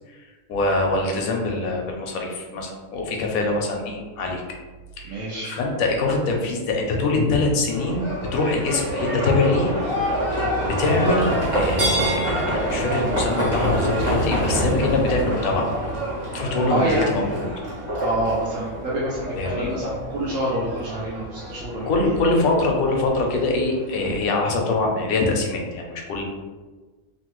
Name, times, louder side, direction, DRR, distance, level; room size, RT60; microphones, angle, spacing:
voice 1, 0.5-4.4 5.0-5.2 5.4-9.7 10.3-15.7 16.3-17.4 19.3-19.7 21.9-26.2, left 2 dB, 90° left, 1 dB, 1.1 m, -23 dB
voice 2, 5.0-5.6 16.7-17.3 18.0-22.1, right 1 dB, 75° right, -7 dB, 1.0 m, -27 dB
Livestock farm animals working animals, 7.7-24.2, equal, 45° right, 1.3 m, -27 dB
3.1 x 2.1 x 3.0 m, 1.3 s
omnidirectional pair, 1.4 m